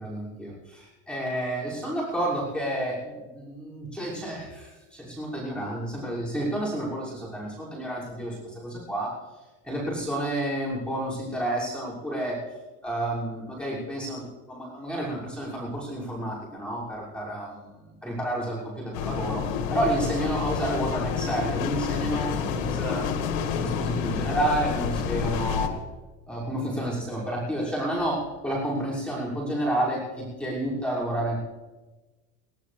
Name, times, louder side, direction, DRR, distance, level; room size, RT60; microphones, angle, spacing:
voice 1, 0.0-9.1 9.6-12.4 12.8-17.7 18.0-23.1 23.4-25.7 26.3-31.4, right 1 dB, 5° left, -7 dB, 6.1 m, -30 dB
sound 1, 18.9-25.7, left 6 dB, 85° left, 2.0 m, -29 dB
20.0 x 18.0 x 3.4 m, 1.2 s
supercardioid pair, 145°, 39 cm